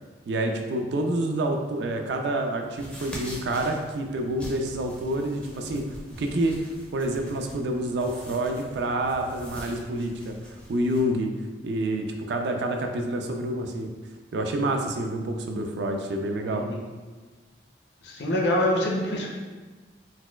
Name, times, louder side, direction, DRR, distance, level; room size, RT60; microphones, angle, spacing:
voice 1, 0.3-5.8 6.2-6.5 6.9-10.3 10.7-11.3 11.6-13.9 14.3-16.6, right 1 dB, 70° right, 4 dB, 0.3 m, -28 dB
sound 1, 2.7-11.0, equal, 5° left, 0.4 m, -44 dB
voice 2, 16.5-16.9 18.0-19.3, left 1 dB, 70° left, 0 dB, 0.5 m, -25 dB
4.1 x 2.2 x 2.2 m, 1.3 s
head